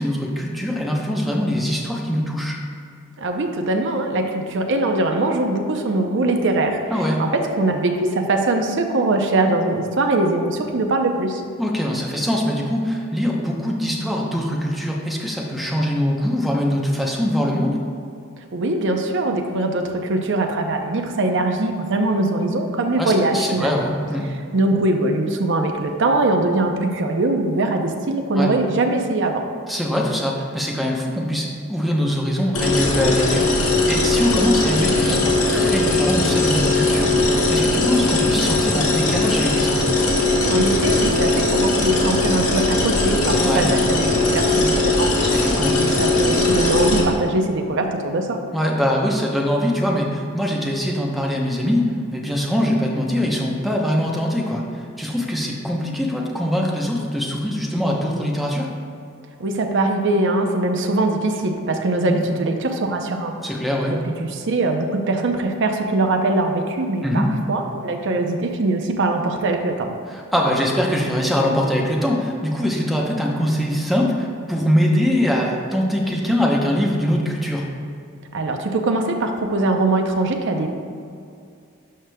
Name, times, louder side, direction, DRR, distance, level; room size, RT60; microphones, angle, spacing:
voice 1, 0.0-2.6 6.9-7.2 11.6-17.8 23.0-24.2 28.4-28.5 29.7-39.9 43.4-43.7 45.2-45.8 48.5-58.7 62.1-62.2 63.4-64.0 67.0-67.3 70.1-77.7, equal, ahead, -2 dB, 0.7 m, -22 dB
voice 2, 3.2-6.8 7.2-11.4 18.5-23.8 24.5-29.4 40.5-45.1 45.7-48.4 59.4-63.3 64.2-69.9 78.3-80.7, right 2 dB, 60° right, 4 dB, 0.6 m, -22 dB
sound 1, 32.5-47.0, left 2 dB, 85° left, 1.3 m, -19 dB
12.0 x 5.0 x 2.2 m, 2.4 s
head